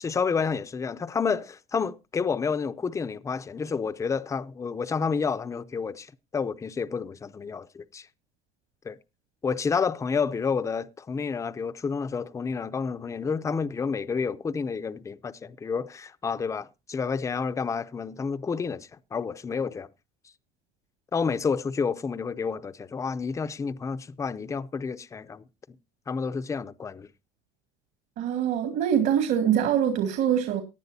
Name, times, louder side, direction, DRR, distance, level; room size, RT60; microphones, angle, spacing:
voice 1, 0.0-6.1 6.3-8.1 8.9-9.0 9.4-19.9 21.1-25.4 26.1-27.1, left 5 dB, 15° left, 0.5 m, -29 dB
voice 2, 28.2-30.6, right 9 dB, 60° right, 2.1 m, -24 dB
18.0 x 10.5 x 2.7 m
cardioid pair, 130°, 20 cm